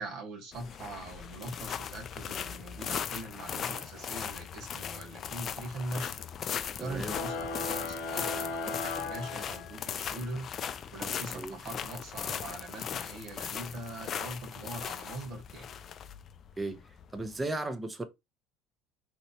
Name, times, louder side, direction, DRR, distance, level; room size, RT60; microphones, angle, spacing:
voice 1, 0.0-6.2 6.8-10.5 10.9-15.8, right 2 dB, 60° right, 1.3 m, -42 dB
sound 1, 0.5-17.4, left 8 dB, 45° left, 0.3 m, -39 dB
voice 2, 6.8-7.2 11.3-11.6 16.6-16.8 17.1-18.1, right 2 dB, 15° right, 0.6 m, -35 dB
sound 2, 7.0-10.0, left 4 dB, 70° left, 0.8 m, -36 dB
3.1 x 2.9 x 2.7 m
supercardioid pair, 105°, 0 cm